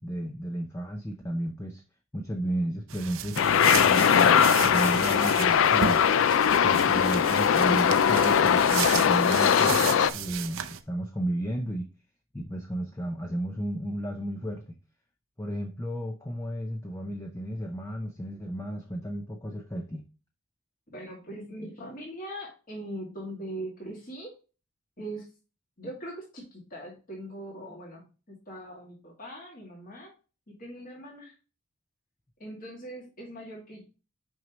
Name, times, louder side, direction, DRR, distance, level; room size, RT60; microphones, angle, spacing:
voice 1, 0.0-1.8 2.1-6.2 6.6-9.8 10.1-11.9 12.3-14.8 15.4-20.0, right 1 dB, 15° left, 2 dB, 0.6 m, -33 dB
sound 1, 2.9-10.8, right 8 dB, 70° right, 0.6 m, -34 dB
sound 2, 3.4-10.1, left 7 dB, 65° left, 0.4 m, -21 dB
voice 2, 20.9-24.3 25.0-25.3 25.8-30.1 30.6-31.3 32.4-33.8, right 1 dB, 40° left, -2 dB, 2.3 m, -41 dB
6.2 x 5.2 x 3.0 m, 0.32 s
head